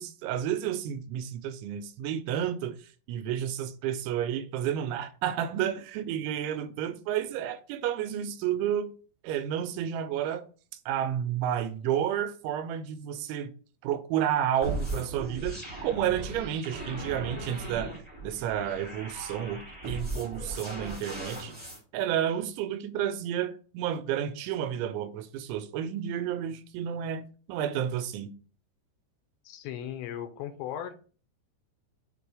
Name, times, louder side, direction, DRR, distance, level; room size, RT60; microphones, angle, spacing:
voice 1, 0.0-8.9 9.2-10.4 10.9-13.5 13.8-17.9 18.2-21.5 21.9-28.3, right 10 dB, 90° right, 3.0 m, -31 dB
sound 1, 14.6-21.8, right 2 dB, 5° right, 1.0 m, -38 dB
voice 2, 29.4-31.0, left 10 dB, 80° left, 2.9 m, -37 dB
7.4 x 3.0 x 4.8 m
omnidirectional pair, 5.3 m